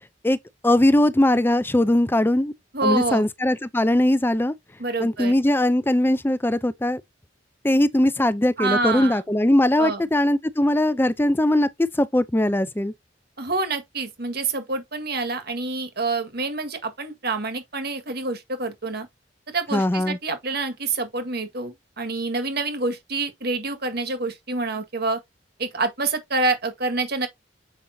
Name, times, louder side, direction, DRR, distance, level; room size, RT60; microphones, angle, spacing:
voice 1, 0.6-2.5 2.8-4.5 5.0-7.0 7.6-12.9 19.7-20.2, left 1 dB, 10° left, 0.5 m, -20 dB
voice 2, 2.7-3.2 4.8-5.3 8.6-9.2 9.8-10.0 13.4-19.1 19.5-25.2 25.6-27.3, right 3 dB, 60° right, 1.8 m, -27 dB
7.2 x 5.2 x 2.7 m
head